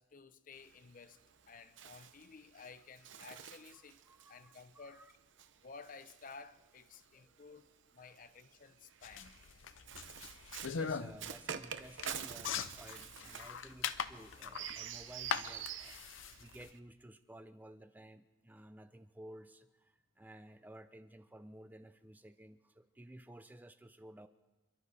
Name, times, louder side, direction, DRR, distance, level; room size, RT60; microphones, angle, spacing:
voice 1, 0.0-4.0 4.3-5.1 5.6-9.4, left 4 dB, 45° left, 0.6 m, -54 dB
Bird, 0.5-7.1 8.0-16.8, right 8 dB, 80° right, 0.8 m, -48 dB
voice 2, 3.7-5.1 6.9-7.4 8.0-8.1 10.3-10.4 10.8-24.3, right 1 dB, 10° right, 0.4 m, -55 dB
sound 1, 9.0-16.7, left 6 dB, 90° left, 0.6 m, -41 dB
28.0 x 12.0 x 4.1 m
head